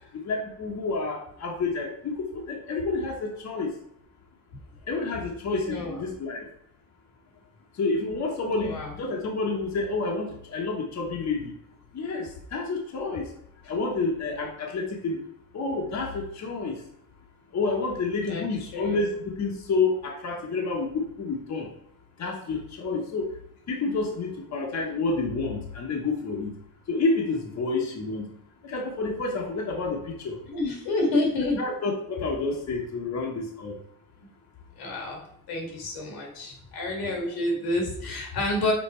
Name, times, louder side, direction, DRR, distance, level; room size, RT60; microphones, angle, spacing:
voice 1, 0.1-3.7 4.9-6.5 7.8-11.5 11.9-13.3 13.7-15.2 15.5-16.8 17.5-21.7 22.2-23.3 23.7-26.5 26.9-28.3 28.6-30.4 31.6-33.8, left 3 dB, 45° left, 0 dB, 1.2 m, -29 dB
voice 2, 5.7-6.0 8.5-8.9 18.2-19.0 30.4-31.6 34.2-34.3 34.8-35.2 35.5-38.7, left 2 dB, 85° left, 1 dB, 2.1 m, -29 dB
5.5 x 3.9 x 4.4 m, 0.72 s
cardioid pair, 105°, 37 cm